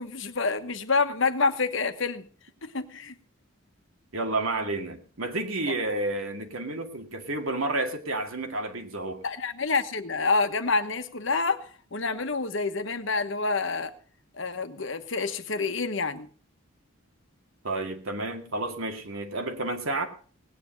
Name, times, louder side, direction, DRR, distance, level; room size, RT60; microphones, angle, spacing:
voice 1, 0.0-2.3 2.6-3.1 5.7-5.8 9.2-13.9 14.4-16.3, left 4 dB, 65° left, 9 dB, 1.2 m, -28 dB
voice 2, 4.1-9.2 17.6-20.1, right 2 dB, 80° right, 4 dB, 2.2 m, -30 dB
18.5 x 9.7 x 5.3 m, 0.42 s
head